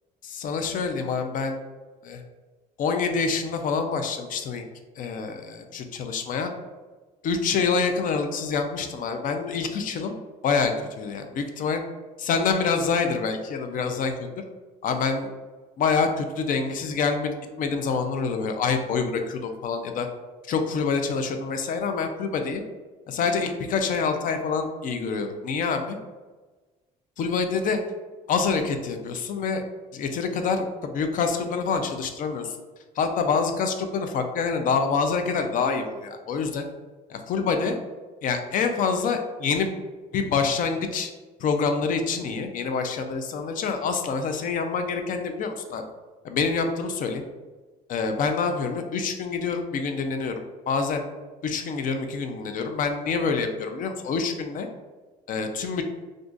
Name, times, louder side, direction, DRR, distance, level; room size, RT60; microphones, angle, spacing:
voice 1, 0.2-1.6 2.0-2.2 2.8-4.6 5.0-6.5 7.2-10.2 10.4-11.8 12.2-14.3 14.8-15.3 15.8-20.1 20.5-22.6 23.1-26.0 27.2-27.8 28.3-29.6 29.9-32.6 33.0-36.7 37.1-37.8 38.2-39.7 40.1-41.1 41.4-45.8 46.2-47.2 47.9-50.4 50.7-51.0 51.4-54.7 55.3-55.8, left 5 dB, 50° left, 6 dB, 0.4 m, -26 dB
2.4 x 2.4 x 3.7 m, 1.3 s
cardioid pair, 110°, 17 cm